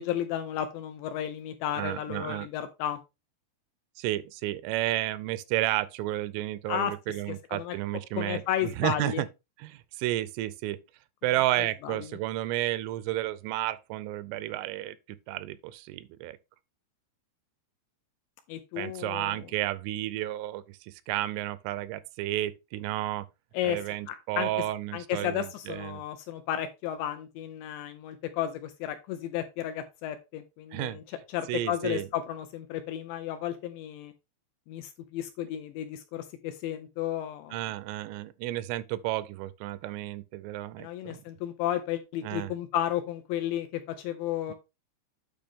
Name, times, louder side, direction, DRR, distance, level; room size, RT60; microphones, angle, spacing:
voice 1, 0.0-3.0 6.7-6.9 7.3-7.8 8.2-9.2 11.8-12.1 18.5-19.5 23.5-23.8 24.1-24.5 24.9-31.0 31.3-34.1 34.7-37.6 40.8-44.5, left 11 dB, 80° left, 2.7 m, -33 dB
voice 2, 1.8-2.5 4.0-9.3 9.6-10.8 11.2-16.4 18.8-23.3 23.6-26.0 30.7-31.0 31.5-32.1 37.5-41.2 42.2-42.5 44.5-44.6, right 15 dB, 90° right, 3.2 m, -32 dB
8.9 x 5.5 x 3.4 m
omnidirectional pair, 5.6 m